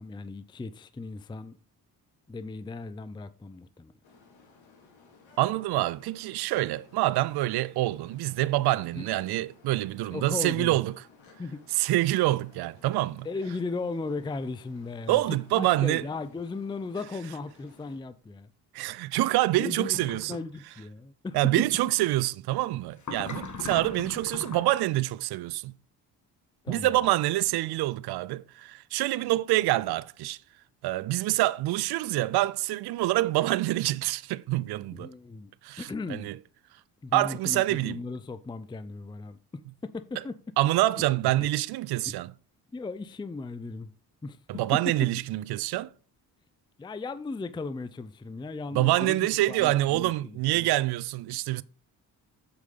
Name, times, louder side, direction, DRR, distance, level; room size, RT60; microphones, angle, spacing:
voice 1, 0.0-1.6 2.3-3.9 9.0-9.1 10.1-10.8 11.4-11.6 13.2-18.5 19.6-21.5 26.6-27.0 34.9-35.5 35.8-36.3 37.0-39.4 39.8-40.4 41.3-41.5 42.1-42.2 42.7-44.0 44.2-44.9 46.8-50.7, left 3 dB, 10° left, 0.5 m, -37 dB
sound 1, 4.0-18.0, left 4 dB, 65° left, 2.4 m, -57 dB
voice 2, 5.4-10.9 11.8-13.3 15.1-16.0 18.7-20.4 21.3-25.7 26.7-30.4 30.8-35.1 35.6-36.4 37.1-38.0 40.6-42.3 44.5-45.9 48.7-51.6, right 16 dB, 55° right, 0.5 m, -26 dB
sound 2, 19.9-20.4 23.0-24.8, left 4 dB, 35° left, 1.6 m, -39 dB
6.4 x 5.1 x 5.3 m
hypercardioid pair, 45°, 49 cm